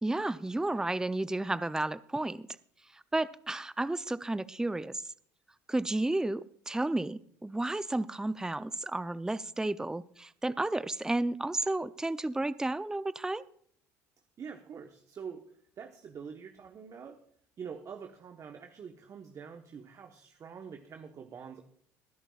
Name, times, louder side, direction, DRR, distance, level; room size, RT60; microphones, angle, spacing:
voice 1, 0.0-2.5 2.9-5.0 5.7-13.4, right 2 dB, 10° right, 15 dB, 0.5 m, -32 dB
voice 2, 14.4-15.4 15.8-17.2 17.6-21.6, right 6 dB, 45° right, 6 dB, 1.1 m, -45 dB
21.5 x 11.0 x 2.4 m, 0.62 s
hypercardioid pair, 70°, 8 cm